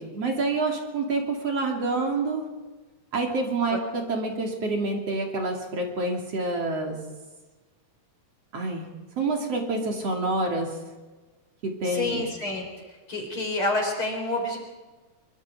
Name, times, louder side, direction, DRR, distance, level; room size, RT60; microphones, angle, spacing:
voice 1, 0.0-2.5 3.1-7.0 8.5-8.9 9.2-10.8 11.6-12.2, right 2 dB, 55° right, 1 dB, 3.8 m, -27 dB
voice 2, 11.8-12.7 13.1-14.6, left 2 dB, 45° left, 2 dB, 5.1 m, -28 dB
24.0 x 24.0 x 5.0 m, 1.2 s
omnidirectional pair, 3.4 m